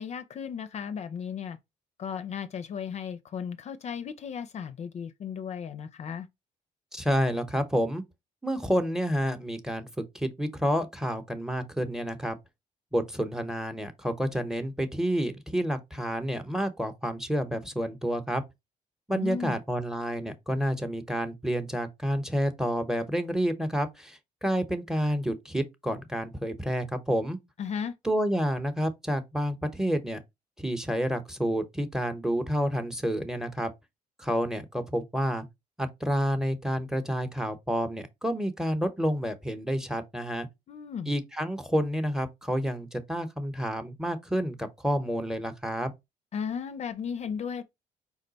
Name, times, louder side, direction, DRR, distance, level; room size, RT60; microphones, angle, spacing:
voice 1, 0.0-1.6 2.0-6.3 19.1-19.6 27.6-27.9 40.7-41.1 46.3-47.6, left 7 dB, 50° left, 0.4 m, -35 dB
voice 2, 6.9-8.0 8.4-9.9 10.1-12.4 12.9-18.4 19.1-27.4 28.0-30.2 30.6-33.7 34.2-35.5 35.8-40.5 41.1-45.9, equal, 5° right, 0.8 m, -29 dB
4.7 x 2.1 x 3.9 m
cardioid pair, 90°, 14 cm